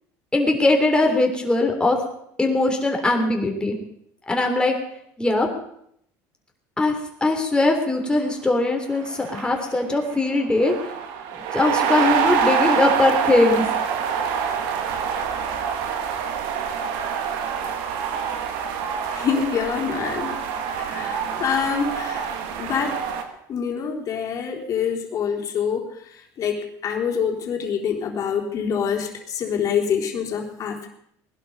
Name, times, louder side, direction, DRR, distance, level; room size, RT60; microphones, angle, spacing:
voice 1, 0.3-2.0 2.4-3.8 4.3-4.7 5.2-5.5 6.8-6.9 7.2-10.9 11.5-13.6, left 2 dB, 10° left, 2 dB, 3.4 m, -20 dB
sound 1, 8.6-8.7 8.9-23.2, right 7 dB, 80° right, 2.2 m, -26 dB
voice 2, 19.1-20.4 20.8-22.3 22.6-23.0 23.5-30.9, left 7 dB, 45° left, 1 dB, 3.7 m, -26 dB
20.0 x 11.5 x 5.4 m, 0.72 s
cardioid pair, 120°, 8 cm